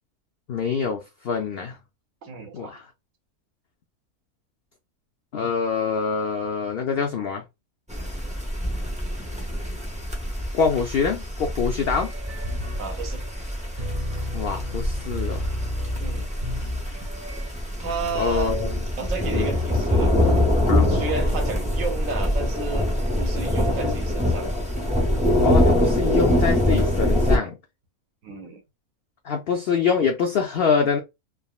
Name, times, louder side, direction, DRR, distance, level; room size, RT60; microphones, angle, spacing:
voice 1, 0.5-1.8 2.5-2.9 5.3-7.4 10.5-12.1 14.3-15.5 18.2-18.7 19.3-19.5 20.7-20.9 25.4-27.6 29.2-31.0, left 6 dB, 80° left, 0.5 m, -25 dB
voice 2, 2.2-2.7 12.8-13.2 16.0-16.3 16.9-17.0 17.8-18.6 19.0-20.1 20.9-22.9 23.2-24.5 28.2-28.6, right 4 dB, 65° right, 1.1 m, -32 dB
sound 1, 7.9-27.4, left 1 dB, 10° right, 0.4 m, -24 dB
sound 2, 11.9-17.5, left 1 dB, 45° right, 0.9 m, -33 dB
3.6 x 2.0 x 2.3 m
omnidirectional pair, 1.5 m